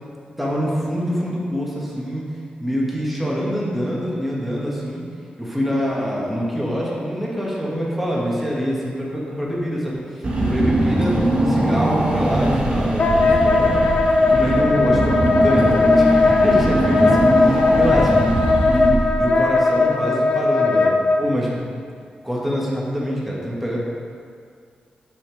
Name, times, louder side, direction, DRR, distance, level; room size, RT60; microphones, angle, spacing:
voice 1, 0.4-2.2 2.6-5.0 5.4-10.0 10.4-11.2 11.5-13.8 14.3-20.9 21.2-21.7 22.2-23.8, equal, 5° right, -5 dB, 2.0 m, -25 dB
Car / Engine, 10.2-19.4, right 1 dB, 40° right, 2.2 m, -21 dB
Wind instrument woodwind instrument, 13.0-21.2, left 3 dB, 50° left, 0.6 m, -18 dB
11.5 x 5.6 x 3.6 m, 2.2 s
wide cardioid pair, 95°, 3 cm